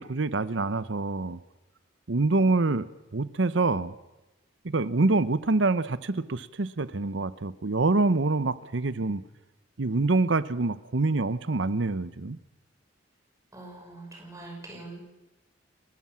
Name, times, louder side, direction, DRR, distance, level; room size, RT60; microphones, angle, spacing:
voice 1, 0.0-1.4 2.1-2.9 3.1-3.9 4.6-9.2 9.8-12.4, right 3 dB, 75° right, 15 dB, 0.8 m, -26 dB
voice 2, 13.5-15.0, right 2 dB, 15° right, 0 dB, 5.7 m, -43 dB
29.5 x 13.5 x 7.4 m, 1.0 s
head